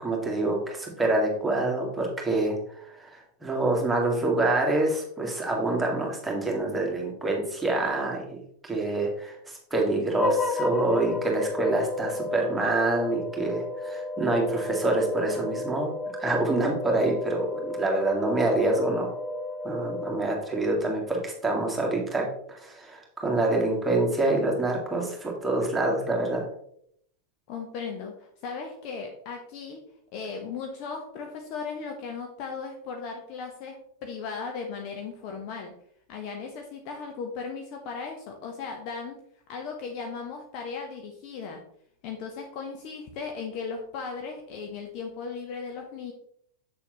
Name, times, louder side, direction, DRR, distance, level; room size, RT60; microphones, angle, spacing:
voice 1, 0.0-2.6 2.9-8.2 8.6-15.9 16.2-19.1 19.6-26.4, right 2 dB, 10° right, -1 dB, 2.0 m, -26 dB
sound 1, 10.1-20.7, left 2 dB, 15° left, 1.0 m, -33 dB
voice 2, 27.5-29.8 30.1-35.7 36.1-39.2 39.5-41.6 42.0-46.1, left 5 dB, 40° left, 2 dB, 1.1 m, -37 dB
7.7 x 6.9 x 3.0 m, 0.68 s
figure-of-eight pair, 90°, 0 cm